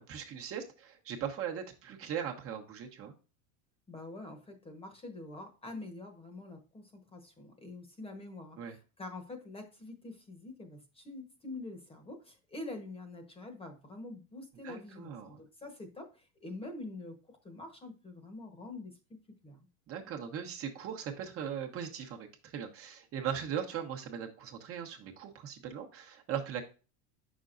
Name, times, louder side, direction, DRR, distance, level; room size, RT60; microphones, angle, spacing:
voice 1, 0.0-3.1 8.6-8.7 14.6-15.4 19.9-26.6, right 8 dB, 35° right, 3 dB, 1.2 m, -39 dB
voice 2, 3.9-17.2 17.4-18.9 19.4-19.7, left 2 dB, 15° left, 6 dB, 1.2 m, -46 dB
8.1 x 6.2 x 2.6 m, 0.34 s
supercardioid pair, 150°, 39 cm